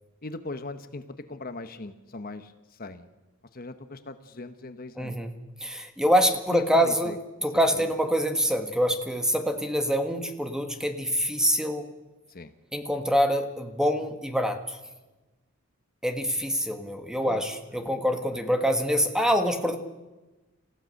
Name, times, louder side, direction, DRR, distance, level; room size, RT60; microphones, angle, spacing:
voice 1, 0.2-3.1 3.5-5.2 6.5-7.2 7.7-7.9 12.3-12.5 17.2-17.4 17.7-17.8, left 2 dB, 40° left, 9 dB, 1.0 m, -39 dB
voice 2, 5.0-5.3 5.6-7.1 7.4-11.9 12.7-14.8 16.0-19.8, equal, 5° right, 6 dB, 1.5 m, -25 dB
28.0 x 15.0 x 6.5 m, 1.1 s
head